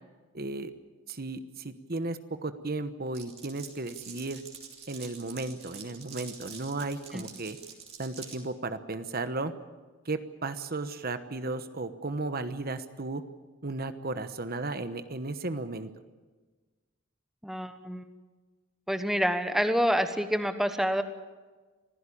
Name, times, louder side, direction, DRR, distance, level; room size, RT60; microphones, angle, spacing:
voice 1, 0.3-0.7 1.1-4.4 4.9-7.6 8.0-9.5 10.0-13.2 13.6-15.9, right 2 dB, 45° right, 10 dB, 1.1 m, -34 dB
Glass, 3.1-8.4, right 6 dB, 30° right, 3.2 m, -46 dB
voice 2, 17.4-18.0 18.9-21.0, equal, ahead, 8 dB, 1.1 m, -27 dB
25.0 x 16.0 x 8.6 m, 1.3 s
head